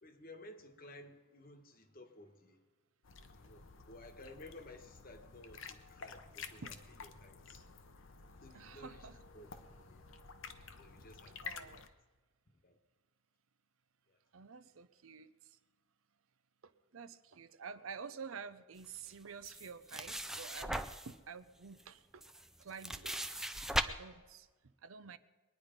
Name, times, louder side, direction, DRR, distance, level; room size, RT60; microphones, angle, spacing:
voice 1, 0.0-2.6 3.3-6.7 7.0-7.7 8.0-8.1 8.4-9.1 9.3-10.0 10.8-11.7 12.6-12.8 14.1-14.2, left 1 dB, 45° left, 1.3 m, -55 dB
sound 1, 3.0-11.9, left 5 dB, 70° left, 0.9 m, -51 dB
voice 2, 8.5-9.2 11.4-11.9 14.3-15.6 16.6-22.3 22.6-23.3 23.8-25.2, right 5 dB, 80° right, 0.7 m, -50 dB
sound 2, 19.4-21.1 21.8-21.9 22.2-23.8, right 1 dB, ahead, 0.4 m, -38 dB
22.0 x 9.9 x 5.2 m
head